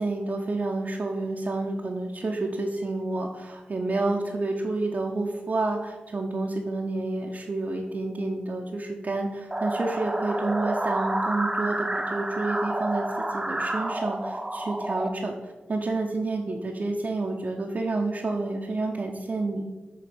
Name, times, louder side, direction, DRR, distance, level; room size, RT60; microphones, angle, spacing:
voice 1, 0.0-19.6, right 2 dB, 50° right, -1 dB, 0.7 m, -29 dB
sound 1, 9.5-15.1, right 1 dB, 15° right, 0.8 m, -29 dB
7.7 x 3.2 x 5.2 m, 1.3 s
cardioid pair, 45°, 4 cm